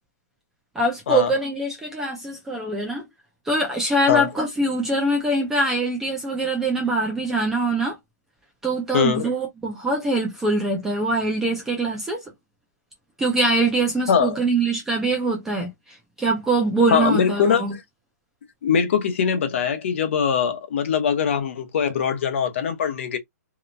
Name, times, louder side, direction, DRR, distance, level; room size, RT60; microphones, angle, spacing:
voice 1, 0.8-3.0 3.5-8.0 8.6-12.2 13.2-17.7, right 2 dB, 5° right, 0.3 m, -23 dB
voice 2, 8.9-9.2 14.1-14.4 16.9-17.6 18.6-23.2, left 7 dB, 45° left, 0.7 m, -22 dB
2.9 x 2.0 x 2.5 m
hypercardioid pair, 175°, 9 cm